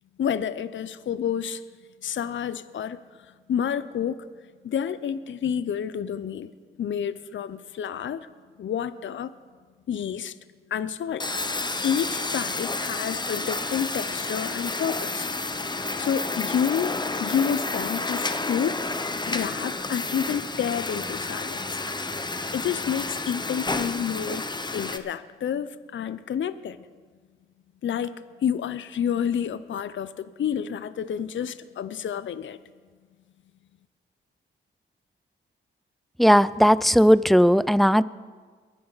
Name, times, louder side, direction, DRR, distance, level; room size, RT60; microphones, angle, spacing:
voice 1, 0.2-1.6 2.0-3.0 3.5-4.2 4.6-6.5 6.8-8.3 8.6-9.3 9.9-10.4 10.7-11.3 11.8-15.3 15.7-18.8 19.3-21.8 22.5-24.5 24.7-26.8 27.8-32.6, left 8 dB, 65° left, 15 dB, 0.6 m, -29 dB
sound 1, 11.2-25.0, left 3 dB, 20° left, 0.9 m, -30 dB
voice 2, 36.2-38.0, equal, ahead, 18 dB, 0.4 m, -17 dB
22.5 x 9.9 x 4.0 m, 1.5 s
cardioid pair, 65°, 21 cm